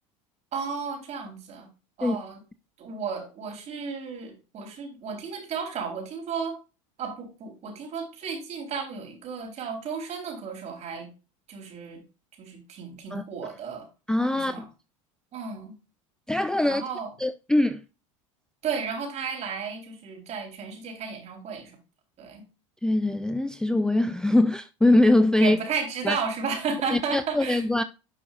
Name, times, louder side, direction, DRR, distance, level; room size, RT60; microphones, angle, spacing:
voice 1, 0.5-1.7 2.0-2.4 2.8-6.6 7.0-11.1 11.5-12.0 12.4-13.9 14.3-14.7 15.3-15.7 16.7-17.1 18.6-21.7 22.2-22.4 25.4-27.6, right 5 dB, 40° right, 3.9 m, -33 dB
voice 2, 14.1-14.6 16.3-16.8 17.2-17.8 22.8-25.6 26.0-26.2 26.9-27.8, left 1 dB, 5° left, 0.4 m, -22 dB
11.0 x 6.0 x 2.5 m
hypercardioid pair, 100°, 17 cm